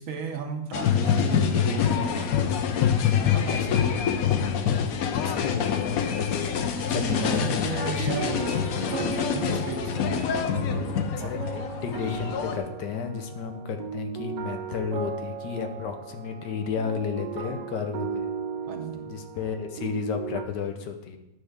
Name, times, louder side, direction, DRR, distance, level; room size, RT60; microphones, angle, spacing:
voice 1, 0.0-2.6 3.3-3.8 6.9-11.5 17.3-17.6 18.7-19.2, right 5 dB, 60° right, 6 dB, 0.9 m, -35 dB
sound 1, 0.7-12.6, left 8 dB, 65° left, 1.0 m, -26 dB
voice 2, 5.2-6.6 6.9-8.1 11.2-18.3 19.1-21.2, left 6 dB, 90° left, 6 dB, 1.5 m, -32 dB
sound 2, 8.0-20.4, right 7 dB, 85° right, 1.4 m, -37 dB
9.8 x 3.4 x 6.6 m, 0.92 s
omnidirectional pair, 1.8 m